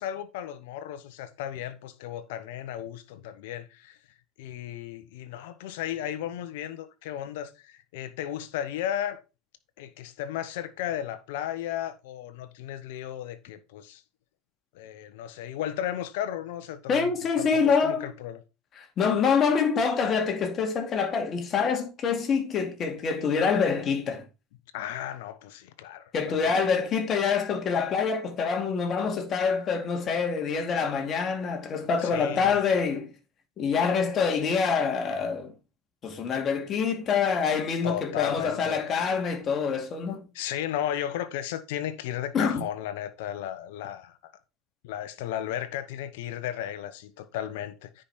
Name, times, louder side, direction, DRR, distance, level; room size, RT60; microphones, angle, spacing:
voice 1, 0.0-4.0 4.4-9.2 9.8-14.0 14.7-17.1 17.4-18.4 24.7-26.5 32.0-32.6 37.8-38.9 40.3-44.2 44.8-48.0, left 11 dB, 75° left, 1.1 m, -35 dB
voice 2, 16.9-18.1 18.8-24.2 26.1-33.1 33.6-35.5 36.0-40.3 42.3-42.6, left 5 dB, 45° left, 2.5 m, -26 dB
9.8 x 5.2 x 4.3 m
hypercardioid pair, 80°, 0 cm